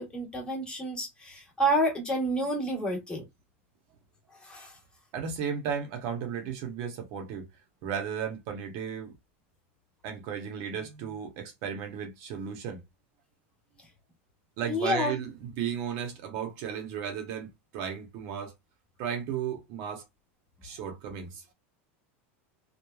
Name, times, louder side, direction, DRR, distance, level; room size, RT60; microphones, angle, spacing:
voice 1, 0.0-3.2 4.4-4.8 14.6-15.2, equal, 15° left, 1.2 m, -29 dB
voice 2, 5.1-7.5 7.8-9.1 10.0-12.8 14.6-18.5 19.0-20.0 20.6-21.4, right 8 dB, 55° right, 0.8 m, -34 dB
3.1 x 2.3 x 2.3 m
supercardioid pair, 135°, 7 cm